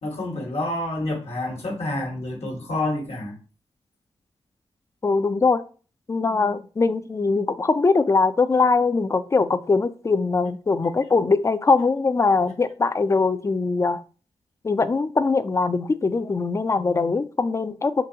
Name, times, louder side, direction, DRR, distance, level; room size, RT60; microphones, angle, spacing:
voice 1, 0.0-3.4, left 2 dB, 70° left, 1.2 m, -28 dB
voice 2, 5.0-5.6 6.1-14.0 14.6-18.1, left 4 dB, 25° left, 0.3 m, -21 dB
3.9 x 2.7 x 2.7 m
cardioid pair, 60°, 11 cm